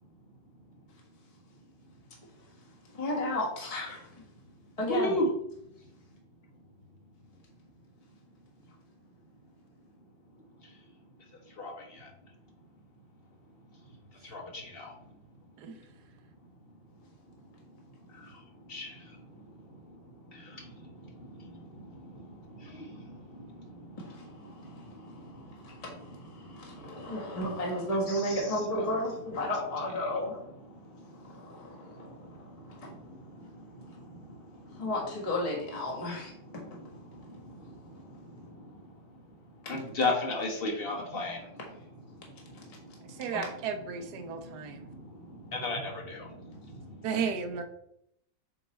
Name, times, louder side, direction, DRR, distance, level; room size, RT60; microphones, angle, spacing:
voice 1, 2.9-4.2 4.8-5.1 24.0-30.4 31.2-33.0 34.7-36.8 43.3-43.4 46.5-46.6, left 1 dB, 20° left, -3 dB, 1.4 m, -34 dB
voice 2, 4.9-5.3 10.6-10.8 11.5-12.1 14.1-14.9 17.4-17.5 17.7-26.0 26.3-27.4 28.1-28.6 30.7-34.9 36.5-39.3 39.6-41.6 42.1-43.2 44.2-47.1, left 2 dB, 40° left, 0 dB, 1.1 m, -39 dB
voice 3, 43.0-44.9 47.0-47.6, right 6 dB, 65° right, 7 dB, 1.2 m, -34 dB
7.8 x 3.0 x 4.2 m, 0.76 s
omnidirectional pair, 2.0 m